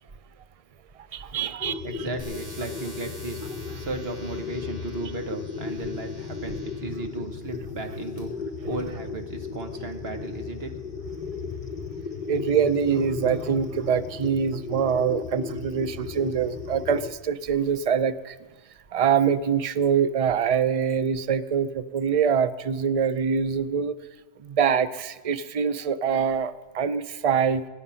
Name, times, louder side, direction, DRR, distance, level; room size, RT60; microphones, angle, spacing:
voice 1, 1.1-2.1 12.3-18.4 18.9-24.0 24.4-27.6, right 7 dB, 45° right, 14 dB, 0.5 m, -24 dB
sound 1, 1.6-17.1, left 5 dB, 40° left, 0.9 m, -35 dB
voice 2, 1.8-3.4 3.7-10.8, right 2 dB, 60° right, 6 dB, 1.5 m, -35 dB
sound 2, 2.2-6.9 7.6-8.2, right 1 dB, 85° right, 3.9 m, -47 dB
24.0 x 9.7 x 5.6 m, 1.3 s
omnidirectional pair, 1.2 m